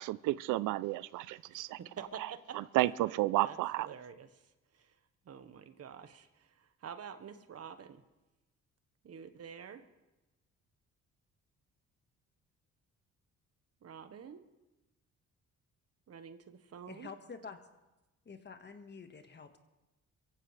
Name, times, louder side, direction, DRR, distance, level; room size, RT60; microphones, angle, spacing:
voice 1, 0.0-1.8 2.5-3.9, right 17 dB, 85° right, 18 dB, 0.5 m, -32 dB
voice 2, 1.5-2.6 3.4-4.4 4.7-5.0 5.2-8.0 9.0-9.8 13.8-14.5 16.1-17.1, right 7 dB, 55° right, 10 dB, 1.3 m, -48 dB
voice 3, 16.9-17.6 18.2-19.6, left 5 dB, 35° left, 7 dB, 1.5 m, -48 dB
23.5 x 15.5 x 3.3 m, 1.0 s
cardioid pair, 90°, 30 cm